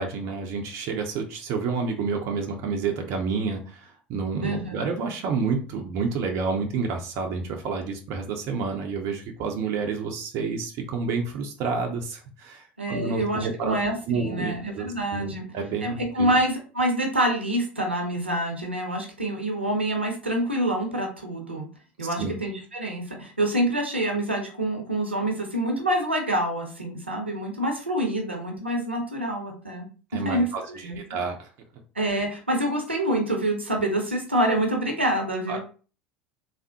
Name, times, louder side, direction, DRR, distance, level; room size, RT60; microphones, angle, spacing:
voice 1, 0.0-13.8 14.1-16.3 22.2-22.3 30.1-31.5 35.5-35.6, right 5 dB, 50° right, 3 dB, 0.5 m, -29 dB
voice 2, 4.4-4.8 12.8-15.4 15.8-21.7 22.0-29.9 30.1-31.0 32.0-35.6, right 1 dB, 85° right, 3 dB, 0.7 m, -26 dB
3.4 x 2.0 x 2.7 m, 0.37 s
figure-of-eight pair, 70°, 6 cm